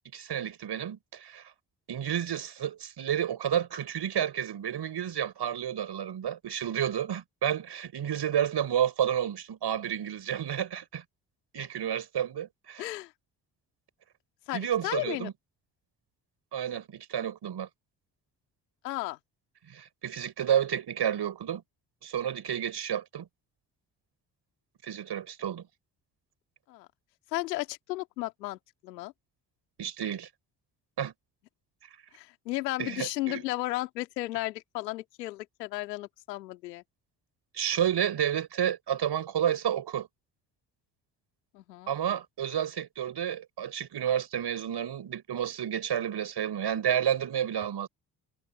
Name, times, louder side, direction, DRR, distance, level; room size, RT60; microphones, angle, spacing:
voice 1, 0.0-1.4 1.9-11.0 11.5-12.8 14.5-15.3 16.5-17.7 19.7-21.6 22.0-23.3 24.8-25.6 29.8-30.3 31.0-31.1 32.8-33.4 37.5-40.1 41.9-47.9, right 9 dB, 55° right, 5.5 m, -30 dB
voice 2, 12.8-13.1 14.5-15.3 18.8-19.2 26.7-26.9 27.3-29.1 32.1-36.8 41.5-41.9, left 18 dB, 85° left, 2.1 m, -34 dB
hypercardioid pair, 45°, 48 cm